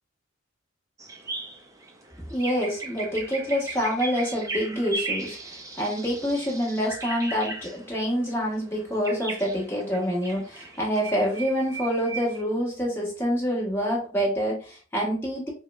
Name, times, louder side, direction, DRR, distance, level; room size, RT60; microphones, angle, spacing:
sound 1, 1.0-12.4, right 3 dB, 15° right, 0.4 m, -37 dB
voice 1, 2.3-15.5, equal, 10° left, -4 dB, 1.1 m, -27 dB
4.6 x 2.1 x 2.2 m, 0.39 s
head